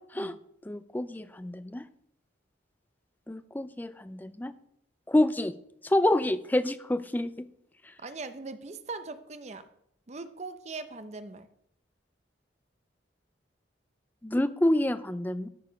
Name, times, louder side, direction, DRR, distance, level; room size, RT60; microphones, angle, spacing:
voice 1, 0.7-1.8 3.3-4.5 5.1-5.5 5.8-7.5 14.2-15.5, left 1 dB, 10° left, 13 dB, 0.3 m, -27 dB
voice 2, 8.0-9.7 10.1-11.5, right 3 dB, 35° right, 11 dB, 0.7 m, -40 dB
13.0 x 4.8 x 5.1 m, 0.74 s
head